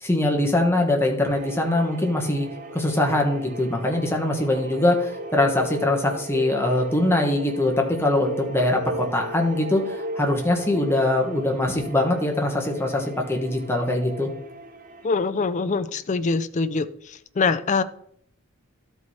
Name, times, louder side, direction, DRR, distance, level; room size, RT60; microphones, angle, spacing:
voice 1, 0.0-2.5 2.7-14.3, left 1 dB, 10° left, 1 dB, 1.3 m, -22 dB
sound 1, 1.2-15.1, right 1 dB, 40° right, 0.8 m, -37 dB
voice 2, 15.0-17.8, left 4 dB, 35° left, 13 dB, 0.4 m, -24 dB
12.0 x 4.7 x 4.2 m, 0.67 s
head